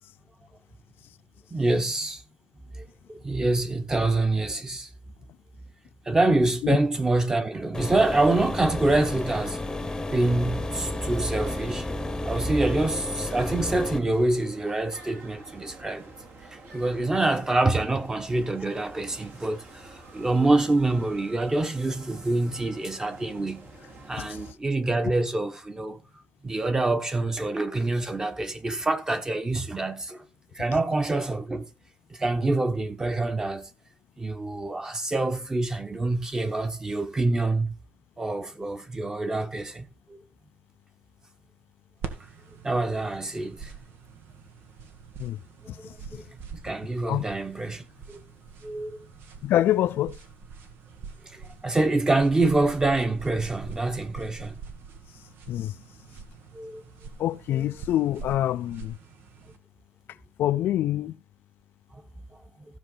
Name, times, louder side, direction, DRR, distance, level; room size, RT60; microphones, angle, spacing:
voice 1, 1.5-2.2 2.7-2.8 3.1-4.9 6.1-9.6 10.1-11.9 12.2-16.1 16.5-23.7 24.1-26.0 26.4-30.2 30.5-31.6 32.1-33.7 34.2-37.7 38.2-40.2 42.6-43.7 46.1-48.2 48.6-49.1 51.2-54.6 56.5-56.8 57.5-57.7 61.9-62.0, right 2 dB, 15° right, 1.1 m, -26 dB
sound 1, 7.7-14.0, left 2 dB, 15° left, 0.9 m, -32 dB
sound 2, 8.8-24.5, right 3 dB, 65° right, 3.1 m, -48 dB
sound 3, 42.0-59.6, right 5 dB, 85° right, 1.6 m, -45 dB
voice 2, 45.7-46.2 47.1-47.2 49.4-50.2 55.5-55.7 57.2-59.0 60.4-61.1, left 13 dB, 80° left, 0.4 m, -26 dB
15.5 x 6.1 x 3.9 m
cardioid pair, 140°, 4 cm